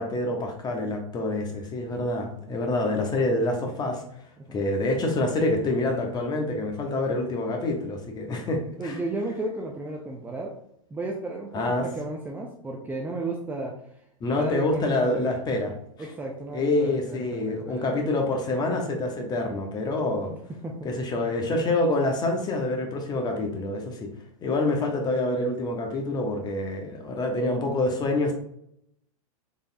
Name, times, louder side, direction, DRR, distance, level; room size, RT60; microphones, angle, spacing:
voice 1, 0.0-4.0 4.5-9.0 11.5-11.9 14.2-15.7 16.5-20.3 20.8-24.1 24.4-28.3, left 2 dB, 25° left, 3 dB, 0.9 m, -26 dB
voice 2, 8.8-10.5 10.9-13.7 14.3-15.3 16.0-17.8 20.6-20.9, right 2 dB, 10° right, 0 dB, 0.5 m, -33 dB
4.1 x 3.4 x 2.6 m, 0.73 s
hypercardioid pair, 120°, 18 cm